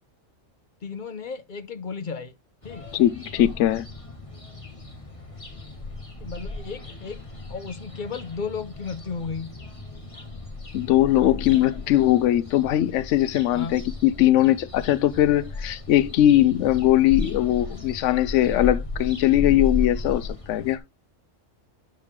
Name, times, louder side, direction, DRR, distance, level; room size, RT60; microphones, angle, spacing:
voice 1, 0.8-2.3 2.6-2.9 6.2-9.6 13.5-13.8, left 5 dB, 45° left, 1.0 m, -34 dB
sound 1, 2.6-20.8, left 3 dB, 25° left, 1.7 m, -35 dB
voice 2, 2.9-3.9 10.7-20.8, left 13 dB, 75° left, 0.9 m, -20 dB
12.0 x 4.8 x 3.7 m
omnidirectional pair, 1.3 m